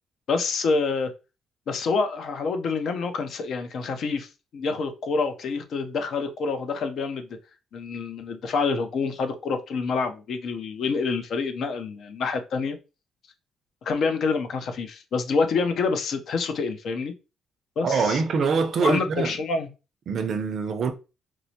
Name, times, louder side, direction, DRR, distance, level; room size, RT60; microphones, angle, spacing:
voice 1, 0.3-1.1 1.7-7.3 7.7-12.8 13.8-17.1 17.8-18.2 18.8-19.7, left 4 dB, 65° left, 0.6 m, -27 dB
voice 2, 17.8-19.3 20.1-20.9, right 5 dB, 60° right, 0.5 m, -24 dB
4.5 x 2.0 x 2.7 m
cardioid pair, 90°, 0 cm